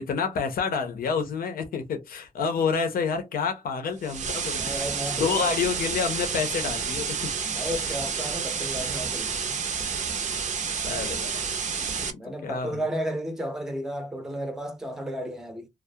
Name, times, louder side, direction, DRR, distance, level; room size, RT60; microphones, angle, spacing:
voice 1, 0.0-4.9 5.1-7.2 10.8-12.8, left 5 dB, 80° left, 0.6 m, -29 dB
sound 1, 4.0-12.1, right 6 dB, 55° right, 0.5 m, -30 dB
voice 2, 4.6-5.5 7.4-9.5 12.2-15.7, equal, 5° right, 0.5 m, -33 dB
2.3 x 2.0 x 2.7 m
wide cardioid pair, 100°, 15 cm